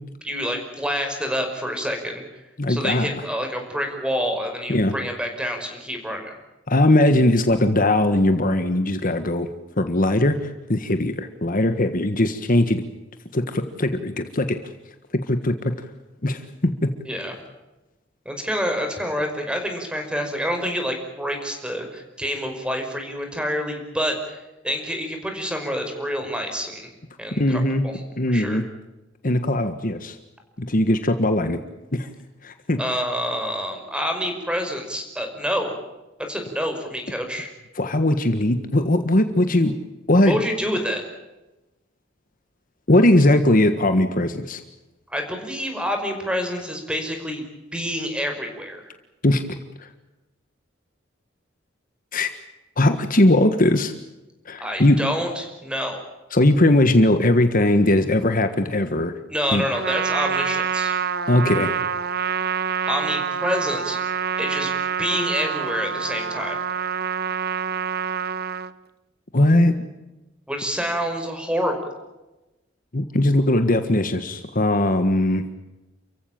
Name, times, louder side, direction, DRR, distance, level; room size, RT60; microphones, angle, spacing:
voice 1, 0.2-2.2 2.7-6.3 17.1-17.3 18.3-26.9 27.2-27.9 28.3-28.6 32.8-35.8 36.3-37.5 40.3-41.0 45.1-47.4 47.7-48.8 54.6-56.0 59.3-61.0 62.9-64.0 64.4-64.7 65.0-66.6 70.5-71.9, equal, 5° right, 5 dB, 5.4 m, -27 dB
voice 2, 2.6-3.1 4.7-4.9 6.7-9.5 9.8-12.8 13.3-14.6 15.1-15.9 16.2-16.9 27.3-27.9 28.2-28.6 29.2-30.2 30.6-31.6 31.9-32.1 32.4-32.8 37.7-39.7 40.1-40.4 42.9-44.6 49.2-49.4 49.8-49.9 52.1-52.3 52.8-53.9 54.4-55.0 56.3-59.1 59.5-59.6 61.3-61.7 69.3-69.8 72.9-75.4, left 1 dB, 45° left, 8 dB, 1.5 m, -19 dB
Trumpet, 59.7-68.7, right 7 dB, 55° right, 1.0 m, -26 dB
29.5 x 15.5 x 8.9 m, 1.0 s
head